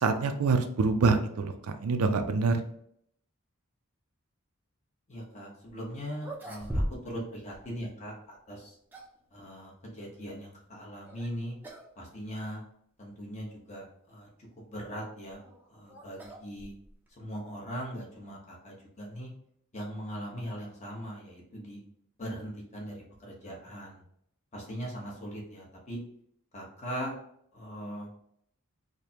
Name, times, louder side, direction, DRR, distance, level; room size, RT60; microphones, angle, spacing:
voice 1, 0.0-1.5 1.8-2.6, right 4 dB, 80° right, 8 dB, 0.4 m, -25 dB
voice 2, 5.1-8.7 9.3-11.6 12.0-12.6 13.0-14.3 14.7-15.4 15.7-16.7 17.2-19.3 19.7-21.8 22.2-24.0 24.5-26.0 26.5-27.1 27.5-28.1, equal, 30° left, -3 dB, 1.0 m, -40 dB
sound 1, 5.7-5.8 6.2-7.3 7.5-7.7 8.5-9.2 11.0-11.3 11.6-11.9 12.2-12.3 13.1-13.2 15.0-17.1, equal, 10° right, 0.5 m, -38 dB
4.9 x 2.2 x 2.8 m, 0.69 s
head